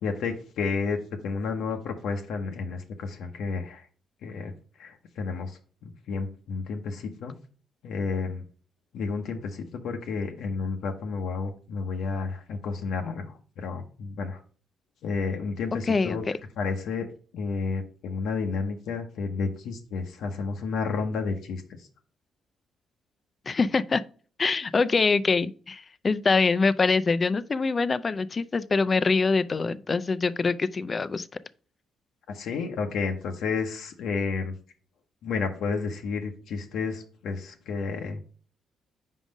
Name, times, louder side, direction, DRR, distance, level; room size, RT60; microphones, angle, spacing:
voice 1, 0.0-3.8 4.2-4.5 4.8-5.5 5.8-7.3 7.8-8.4 8.9-13.3 13.6-14.4 15.0-16.2 16.6-17.1 17.3-21.6 32.3-34.5 35.2-38.2, left 4 dB, 75° left, 0.8 m, -31 dB
voice 2, 15.9-16.2 23.5-24.0 24.4-31.3, left 4 dB, 35° left, 0.4 m, -24 dB
5.0 x 3.8 x 5.1 m
cardioid pair, 90°, 0 cm